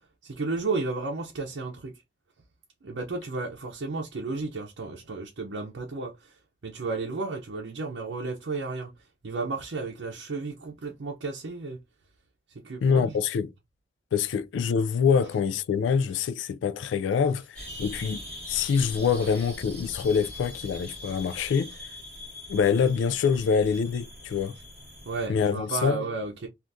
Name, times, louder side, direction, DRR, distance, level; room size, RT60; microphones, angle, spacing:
voice 1, 0.2-2.0 2.8-11.8 12.5-13.2 25.0-26.5, right 3 dB, 85° right, 0.6 m, -33 dB
voice 2, 12.8-13.5 14.1-21.7 22.5-24.6 25.3-26.0, left 6 dB, 90° left, 0.3 m, -25 dB
sound 1, 17.5-25.3, left 1 dB, 5° left, 1.6 m, -42 dB
3.4 x 2.4 x 2.6 m
head